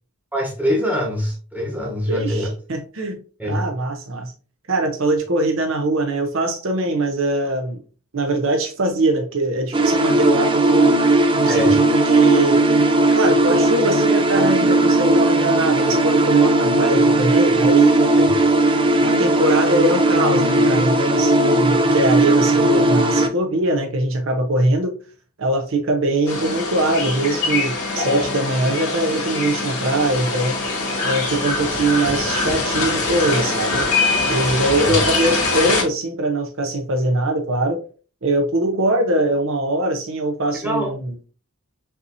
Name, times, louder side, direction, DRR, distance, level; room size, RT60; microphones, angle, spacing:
voice 1, 0.3-2.5 3.4-3.6 11.4-11.7 18.2-18.3 28.2-28.3 34.8-35.0 40.6-40.9, equal, 5° right, 1.1 m, -23 dB
voice 2, 2.1-4.3 4.7-7.8 8.1-11.0 11.4-12.6 13.1-18.1 19.0-25.0 25.4-30.6 31.0-33.8 34.3-37.8 38.2-41.1, right 2 dB, 60° right, 0.7 m, -21 dB
sound 1, 9.7-23.3, right 1 dB, 20° right, 0.4 m, -17 dB
sound 2, 26.3-35.8, left 3 dB, 85° left, 2.0 m, -23 dB
5.7 x 2.9 x 2.6 m
head